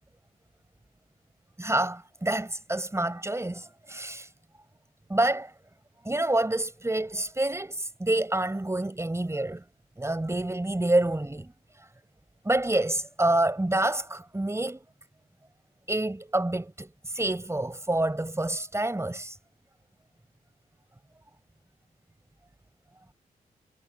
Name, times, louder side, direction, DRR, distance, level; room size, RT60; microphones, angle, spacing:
voice 1, 1.6-4.3 5.1-5.5 6.0-9.6 10.0-11.5 12.4-14.8 15.9-19.4, right 1 dB, 15° right, 5.8 m, -27 dB
cardioid pair, 50°, 16 cm